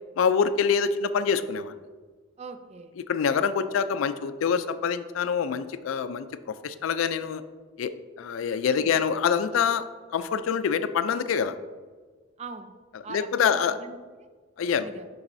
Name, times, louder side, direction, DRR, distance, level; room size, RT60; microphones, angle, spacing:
voice 1, 0.2-1.7 3.1-7.4 7.8-7.9 8.2-9.9 10.1-11.6 13.1-13.8 14.6-14.9, left 6 dB, 85° left, 12 dB, 0.3 m, -25 dB
voice 2, 2.4-2.9 8.8-8.9 12.4-12.7 13.0-14.3 14.8-15.1, right 4 dB, 35° right, 9 dB, 0.3 m, -42 dB
7.1 x 5.3 x 2.6 m, 1.4 s
head